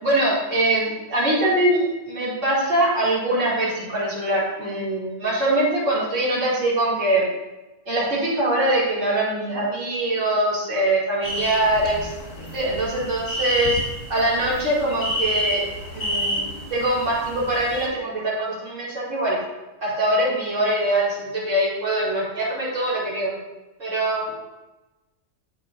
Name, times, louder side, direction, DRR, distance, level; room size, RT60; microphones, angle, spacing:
voice 1, 0.0-7.2 7.9-12.1 12.4-13.8 14.1-15.6 15.9-16.4 16.7-19.4 19.8-23.3 23.8-24.4, right 1 dB, 80° right, -8 dB, 2.6 m, -23 dB
sound 1, 11.2-17.9, equal, 80° left, 2.4 m, -29 dB
8.9 x 7.5 x 2.5 m, 1.1 s
omnidirectional pair, 1.3 m